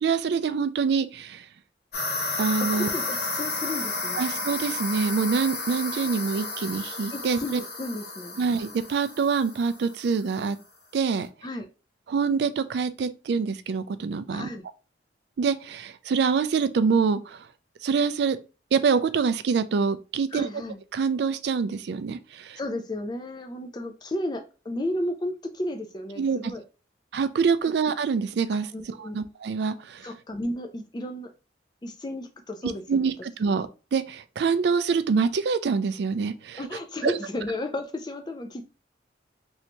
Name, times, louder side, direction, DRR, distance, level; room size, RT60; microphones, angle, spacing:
voice 1, 0.0-1.4 2.4-2.9 4.2-7.4 8.4-10.6 10.9-11.3 12.1-14.5 15.4-17.4 17.8-18.4 18.7-20.5 20.9-22.6 26.2-26.4 27.1-28.7 29.0-30.1 32.9-36.6 37.0-37.2, right 5 dB, 60° right, 0.3 m, -25 dB
sound 1, 1.9-10.1, left 3 dB, 60° left, 1.1 m, -32 dB
voice 2, 2.6-4.2 7.1-8.4 11.4-11.7 14.3-14.6 20.3-20.8 22.6-26.6 27.6-27.7 28.7-29.2 30.0-31.3 31.8-33.1 33.5-33.6 36.6-38.6, left 1 dB, 25° left, 0.4 m, -33 dB
3.3 x 2.7 x 2.9 m
head